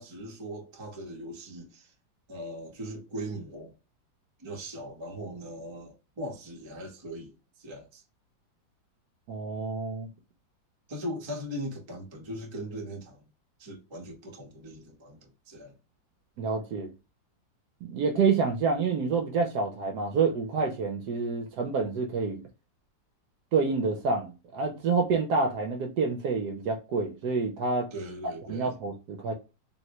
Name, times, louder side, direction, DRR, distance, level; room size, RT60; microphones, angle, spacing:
voice 1, 0.0-1.9 2.3-3.7 4.4-8.0 10.9-13.2 13.6-15.7 27.9-28.7, equal, 25° right, 0.6 m, -39 dB
voice 2, 9.3-10.1 16.4-16.9 17.9-22.4 23.5-27.9 28.5-29.3, right 4 dB, 70° right, 1.1 m, -28 dB
3.8 x 2.1 x 2.8 m
omnidirectional pair, 2.0 m